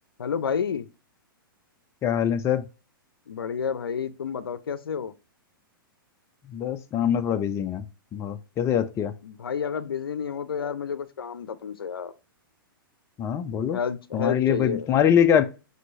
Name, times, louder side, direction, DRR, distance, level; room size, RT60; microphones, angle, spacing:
voice 1, 0.2-0.9 3.3-5.1 9.2-12.1 13.7-14.9, left 7 dB, 85° left, 0.5 m, -30 dB
voice 2, 2.0-2.7 6.5-7.8 8.1-9.1 13.2-13.8 14.1-15.4, left 9 dB, 25° left, 0.5 m, -23 dB
6.0 x 2.8 x 2.6 m
hypercardioid pair, 120°, 12 cm